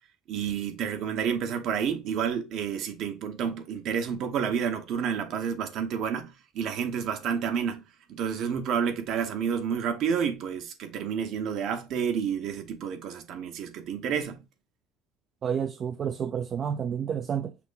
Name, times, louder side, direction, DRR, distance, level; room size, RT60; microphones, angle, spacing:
voice 1, 0.3-7.8 8.1-14.4, right 7 dB, 60° right, 0.9 m, -30 dB
voice 2, 15.4-17.6, right 8 dB, 40° right, 0.3 m, -30 dB
5.8 x 2.1 x 3.9 m
cardioid pair, 120°, 0 cm